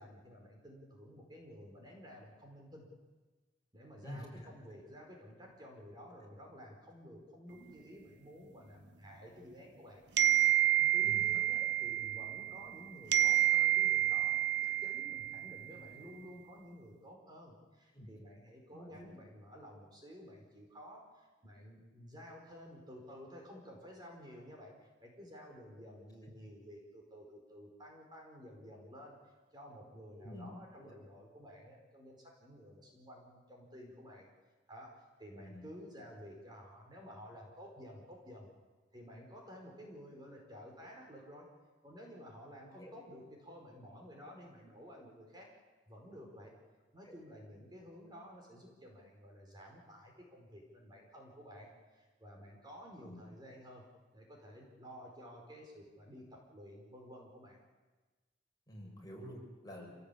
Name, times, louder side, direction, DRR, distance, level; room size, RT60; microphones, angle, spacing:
voice 1, 0.0-2.9 3.7-10.0 10.8-34.3 34.7-38.5 38.9-41.5 41.8-45.5 45.9-46.5 46.9-53.8 54.1-57.6, equal, 25° right, 0 dB, 4.9 m, -53 dB
voice 2, 4.0-4.5 11.0-11.7 17.9-18.1 18.7-19.1 26.2-26.3 30.1-30.5 30.8-30.9 35.4-35.7 42.8-42.9 47.0-47.1 53.0-53.2 58.7-60.0, equal, 20° left, -1 dB, 6.0 m, -49 dB
sound 1, 10.2-12.8 13.1-15.7, right 13 dB, 65° right, 0.7 m, -29 dB
27.0 x 18.0 x 8.6 m, 1.3 s
head